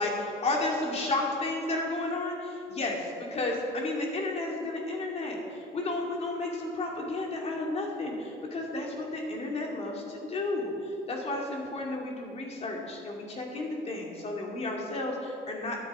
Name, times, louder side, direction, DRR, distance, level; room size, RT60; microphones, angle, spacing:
voice 1, 0.0-5.4 5.7-10.7 11.1-15.8, left 2 dB, 40° left, -1 dB, 2.7 m, -32 dB
12.5 x 10.0 x 5.0 m, 2.5 s
cardioid pair, 110°, 17 cm